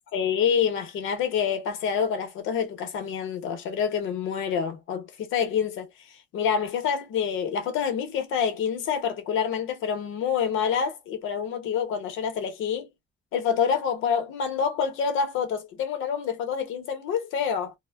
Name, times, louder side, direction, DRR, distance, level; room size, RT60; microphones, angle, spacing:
voice 1, 0.1-5.9 6.3-12.9 13.3-17.7, left 7 dB, 85° left, 0.8 m, -27 dB
2.1 x 2.1 x 3.3 m
cardioid pair, 90°, 20 cm